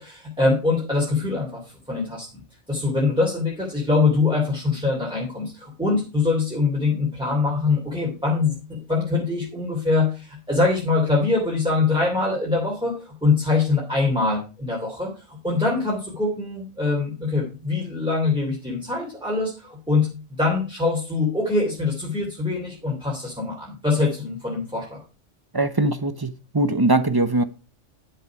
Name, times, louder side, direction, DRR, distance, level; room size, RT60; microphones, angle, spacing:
voice 1, 0.0-1.6 1.9-2.4 2.7-20.1 20.4-25.0, left 3 dB, 5° right, -3 dB, 3.1 m, -23 dB
voice 2, 25.5-27.4, right 2 dB, 20° right, 12 dB, 0.7 m, -21 dB
10.5 x 7.9 x 4.8 m, 0.33 s
omnidirectional pair, 1.3 m